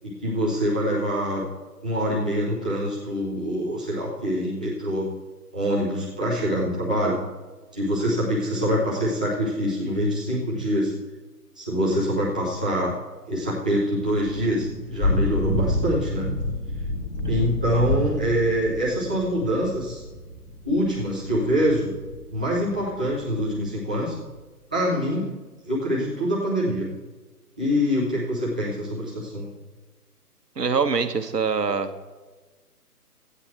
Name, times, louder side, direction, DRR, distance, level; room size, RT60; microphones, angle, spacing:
voice 1, 0.0-1.4 1.8-5.1 5.5-7.2 7.7-10.9 11.6-12.9 13.3-16.3 17.3-20.0 20.6-21.9 22.3-24.2 24.7-25.3 25.6-26.9 27.6-29.5, equal, 5° right, -7 dB, 0.6 m, -25 dB
Thunder / Rain, 14.2-23.6, left 1 dB, 10° left, 1.3 m, -29 dB
voice 2, 30.6-31.9, right 5 dB, 85° right, 9 dB, 1.4 m, -24 dB
13.5 x 9.7 x 4.4 m, 1.3 s
figure-of-eight pair, 145°, 47 cm